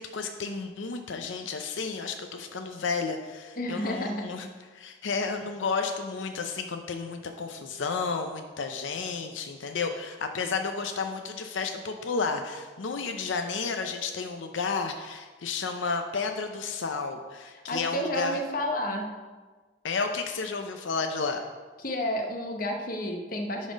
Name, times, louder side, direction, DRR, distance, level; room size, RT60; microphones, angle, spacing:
voice 1, 0.0-18.4 19.8-21.4, left 4 dB, 85° left, 5 dB, 0.6 m, -32 dB
voice 2, 3.6-4.3 17.7-19.1 21.8-23.7, equal, 50° left, 3 dB, 1.0 m, -31 dB
11.0 x 4.2 x 5.1 m, 1.4 s
head